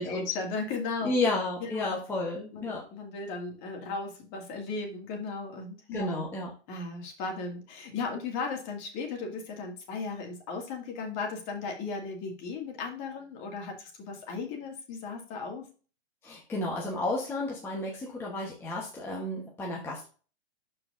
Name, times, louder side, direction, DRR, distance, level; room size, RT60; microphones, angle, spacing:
voice 1, 0.0-1.1 1.6-2.0 2.5-6.3 6.7-15.7, left 4 dB, 30° left, 2 dB, 2.0 m, -36 dB
voice 2, 1.0-2.8 5.9-6.5 16.2-20.1, left 2 dB, 5° left, -3 dB, 1.0 m, -32 dB
12.0 x 4.7 x 2.5 m, 0.36 s
hypercardioid pair, 155°, 33 cm